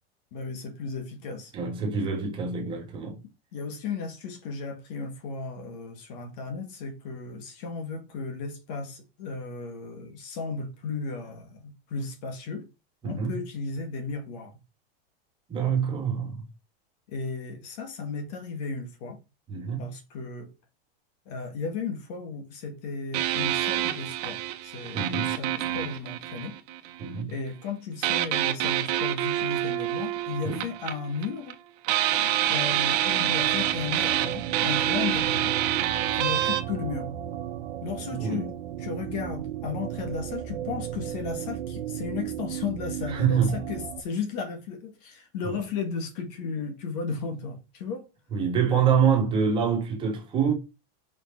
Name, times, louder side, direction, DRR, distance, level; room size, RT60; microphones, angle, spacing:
voice 1, 0.3-1.5 3.5-12.7 13.0-14.6 17.1-19.2 19.8-20.5 21.3-26.6 27.3-31.6 32.5-35.6 36.1-37.2 37.8-38.5 38.8-48.1, left 5 dB, 40° left, 2.2 m, -35 dB
voice 2, 1.5-3.2 13.0-13.3 15.5-16.4 19.5-19.9 24.9-25.3 27.0-27.3 30.4-30.7 38.1-38.5 43.1-43.6 48.3-50.5, right 7 dB, 15° right, 2.4 m, -26 dB
sound 1, 23.1-27.0 28.0-31.5 31.8-36.6, right 13 dB, 40° right, 1.4 m, -27 dB
sound 2, 32.4-44.0, right 11 dB, 75° right, 1.2 m, -35 dB
7.0 x 5.6 x 6.1 m
supercardioid pair, 180°, 31 cm